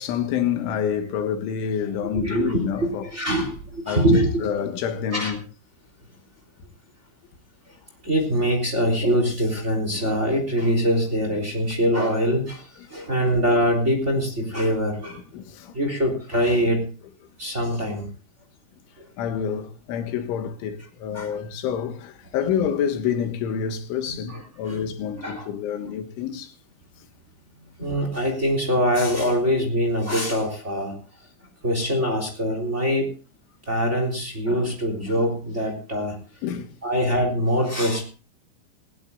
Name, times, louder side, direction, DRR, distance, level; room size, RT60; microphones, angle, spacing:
voice 1, 0.0-3.1 3.9-4.1 4.4-5.4 6.6-6.7 13.1-13.2 15.1-15.8 19.2-26.6 27.0-27.1 36.4-36.8, left 8 dB, 80° left, 3.9 m, -28 dB
voice 2, 2.1-4.4 5.1-5.3 8.0-15.2 15.7-16.9 17.4-18.1 19.0-19.1 21.1-21.3 24.3-24.9 25.2-25.5 25.8-25.9 27.8-30.9 31.6-33.1 33.7-36.1 36.8-38.0, equal, 15° right, 3.0 m, -23 dB
20.0 x 18.5 x 2.5 m
omnidirectional pair, 5.6 m